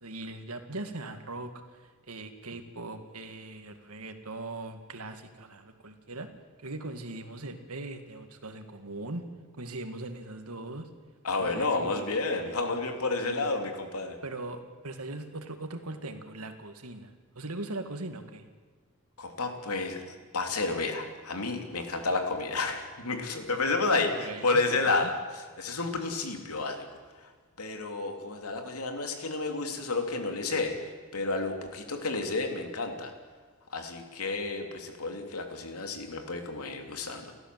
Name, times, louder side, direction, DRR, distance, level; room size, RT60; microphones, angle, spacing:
voice 1, 0.0-6.3 6.6-9.3 9.6-10.9 11.4-12.6 13.2-13.5 14.2-18.5 24.1-25.1, right 2 dB, 85° right, 7 dB, 2.2 m, -40 dB
voice 2, 11.2-14.2 19.2-20.0 20.3-25.1 25.6-26.8 27.6-30.7 31.1-33.1 33.7-37.3, left 3 dB, 90° left, 4 dB, 3.1 m, -30 dB
29.5 x 14.0 x 7.8 m, 1.5 s
head